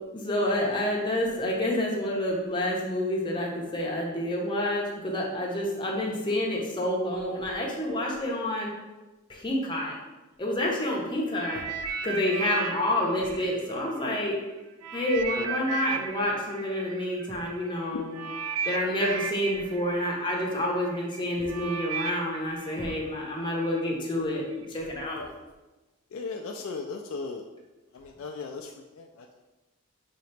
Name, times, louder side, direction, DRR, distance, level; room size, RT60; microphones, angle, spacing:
voice 1, 0.1-8.7 9.3-10.0 10.4-11.6 12.0-14.4 14.9-18.2 18.7-24.4 24.7-25.3, left 1 dB, 20° left, -2 dB, 0.8 m, -28 dB
sound 1, 11.4-14.3 14.8-23.8 24.5-24.7, right 6 dB, 85° right, 0.3 m, -36 dB
voice 2, 26.1-27.4 27.9-29.3, left 4 dB, 60° left, 3 dB, 0.3 m, -37 dB
5.0 x 2.8 x 3.3 m, 1.1 s
head